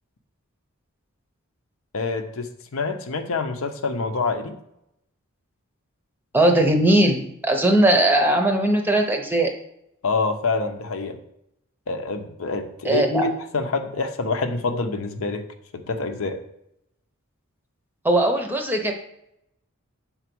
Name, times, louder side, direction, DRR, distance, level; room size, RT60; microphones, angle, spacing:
voice 1, 1.9-4.6 10.0-11.2 11.9-15.5 15.7-16.4, left 3 dB, 70° left, 6 dB, 0.7 m, -26 dB
voice 2, 6.3-9.5 12.8-13.3 18.0-18.9, right 1 dB, 10° right, 3 dB, 0.7 m, -19 dB
6.9 x 4.0 x 6.1 m, 0.79 s
head